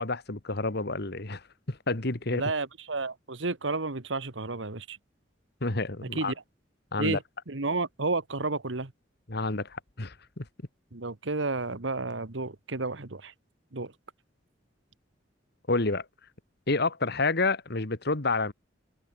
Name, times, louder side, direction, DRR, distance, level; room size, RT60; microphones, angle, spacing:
voice 1, 0.0-1.4 1.7-2.4 5.6-6.3 6.9-7.2 9.3-10.5 15.7-16.1 16.7-18.5, left 3 dB, 60° left, 2.1 m, -29 dB
voice 2, 2.3-5.0 6.0-6.3 7.0-8.9 10.9-13.3 13.7-13.9, right 3 dB, 75° right, 1.6 m, -31 dB
open air
head